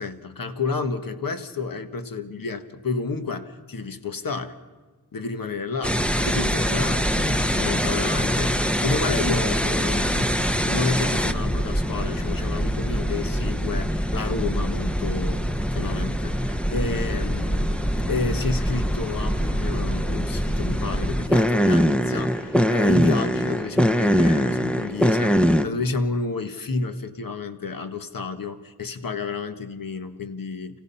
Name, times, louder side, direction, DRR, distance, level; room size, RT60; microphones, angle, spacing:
voice 1, 0.0-4.6 5.1-6.0 6.2-30.8, left 4 dB, 55° left, 8 dB, 1.4 m, -30 dB
sound 1, 5.8-25.6, equal, 5° left, 0.8 m, -23 dB
sound 2, 11.1-22.9, equal, 80° left, 7.8 m, -51 dB
29.0 x 17.0 x 5.6 m, 1.3 s
wide cardioid pair, 100°, 40 cm